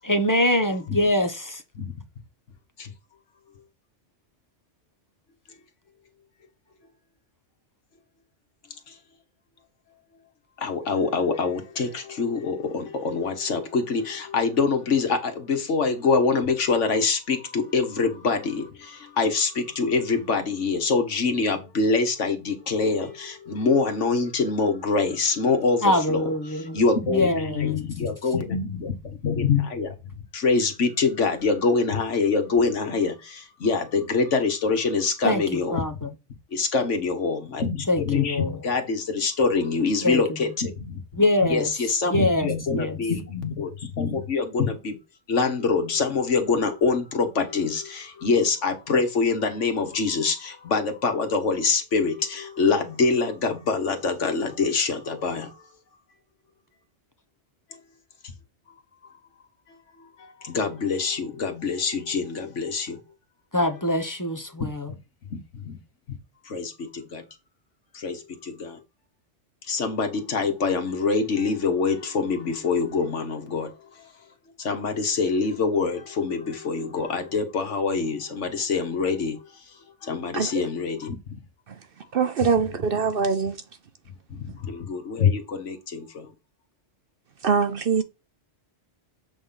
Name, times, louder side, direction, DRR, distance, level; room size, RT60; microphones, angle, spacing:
voice 1, 0.0-1.6 25.8-26.8 27.1-27.8 35.2-35.4 35.7-36.1 37.9-38.6 40.0-40.2 41.2-41.7 42.1-43.0 63.5-64.9, left 1 dB, 15° left, 1.0 m, -24 dB
voice 2, 10.6-26.2 26.5-35.8 36.5-41.0 41.4-45.0 45.3-55.6 58.7-58.8 60.2-63.0 65.3-65.8 66.5-67.2 67.9-68.8 69.7-74.1 74.6-79.4 80.0-81.2 84.3-86.3, left 4 dB, 80° left, 1.7 m, -25 dB
voice 3, 82.1-83.6 87.4-88.0, right 5 dB, 55° right, 0.8 m, -23 dB
7.9 x 3.8 x 5.7 m
omnidirectional pair, 1.2 m